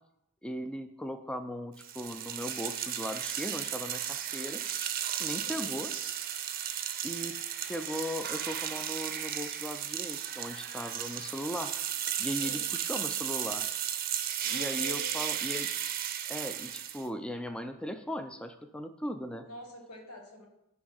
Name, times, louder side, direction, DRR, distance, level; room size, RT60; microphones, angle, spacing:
voice 1, 0.4-4.6 5.2-5.9 7.0-7.4 7.7-11.7 12.2-13.7 14.5-15.7 16.3-19.5, equal, 5° left, 8 dB, 0.3 m, -38 dB
sound 1, 1.8-17.1, right 10 dB, 40° right, 0.6 m, -35 dB
voice 2, 5.4-5.7 12.4-12.7 14.4-15.2 19.4-20.5, left 1 dB, 85° left, 2 dB, 1.6 m, -46 dB
9.7 x 3.5 x 5.5 m, 0.84 s
head